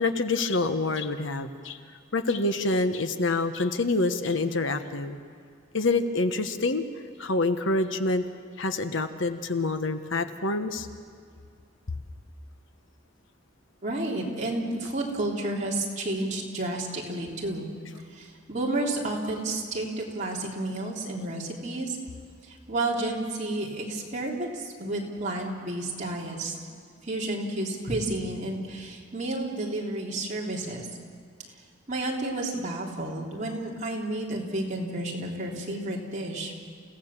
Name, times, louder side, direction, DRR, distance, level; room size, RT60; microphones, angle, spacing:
voice 1, 0.0-1.8 2.1-5.2 5.7-6.8 7.2-8.2 8.6-10.9, left 3 dB, 65° left, 9 dB, 1.2 m, -26 dB
voice 2, 13.8-17.7 18.1-22.0 22.5-26.6 27.0-30.9 31.9-36.5, right 2 dB, 35° right, -3 dB, 3.5 m, -31 dB
29.0 x 16.5 x 7.4 m, 2.2 s
head